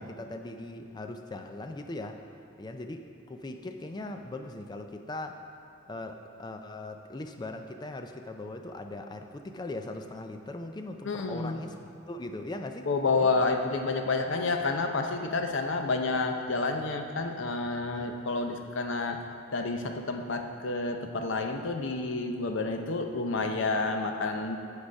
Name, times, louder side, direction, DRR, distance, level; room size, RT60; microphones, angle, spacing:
voice 1, 0.0-2.2 2.6-5.4 5.9-12.9 13.2-13.3 17.9-18.5, left 2 dB, 20° left, 5 dB, 0.4 m, -40 dB
voice 2, 11.0-11.6 12.9-19.2 19.5-24.6, left 3 dB, 65° left, 5 dB, 0.6 m, -29 dB
8.7 x 4.9 x 5.3 m, 2.6 s
head